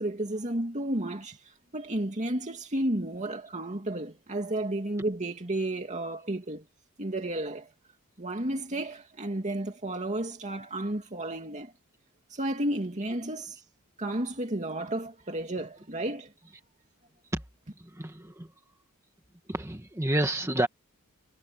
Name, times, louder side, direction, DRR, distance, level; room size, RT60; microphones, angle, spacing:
voice 1, 0.0-6.6 7.0-7.7 8.2-11.7 12.3-13.6 14.0-16.3, right 1 dB, 35° right, 2.5 m, -32 dB
voice 2, 17.8-18.5 19.5-20.7, right 1 dB, 15° right, 1.6 m, -29 dB
head